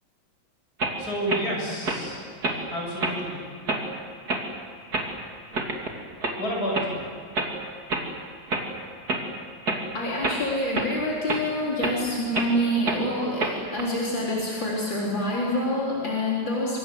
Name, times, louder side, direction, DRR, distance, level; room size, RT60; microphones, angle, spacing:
sound 1, 0.8-0.9 1.3-1.4 1.8-2.0 2.4-2.6 3.0-3.2 3.7-3.8 4.3-4.4 4.9-5.1 5.5-5.9 6.2-6.4 6.7-6.9 7.3-7.5 7.9-8.0 8.5-8.6 9.1-9.2 9.7-9.8 10.2-10.4 10.7-10.9 11.3-11.4 11.8-12.0 12.3-12.5 12.9-13.0 13.4-13.8, right 2 dB, 55° right, 3.2 m, -27 dB
voice 1, 1.0-2.2 2.7-3.4 6.4-7.0, equal, 55° left, -2 dB, 8.0 m, -30 dB
voice 2, 9.9-16.8, left 1 dB, 85° left, -4 dB, 4.6 m, -27 dB
25.5 x 25.0 x 7.9 m, 2.1 s
omnidirectional pair, 2.0 m